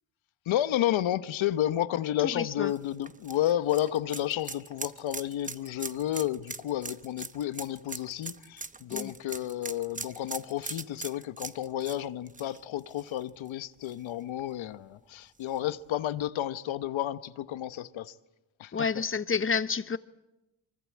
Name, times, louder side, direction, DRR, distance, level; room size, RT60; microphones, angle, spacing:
voice 1, 0.5-18.1 18.6-18.7, left 12 dB, 65° left, 1.1 m, -31 dB
voice 2, 2.3-2.7 8.9-9.1 18.7-20.0, left 5 dB, 25° left, 0.9 m, -29 dB
sound 1, 2.7-13.5 13.8-13.9 15.4-15.5, right 4 dB, 15° right, 0.9 m, -41 dB
24.0 x 24.0 x 8.5 m
cardioid pair, 90°, 50 cm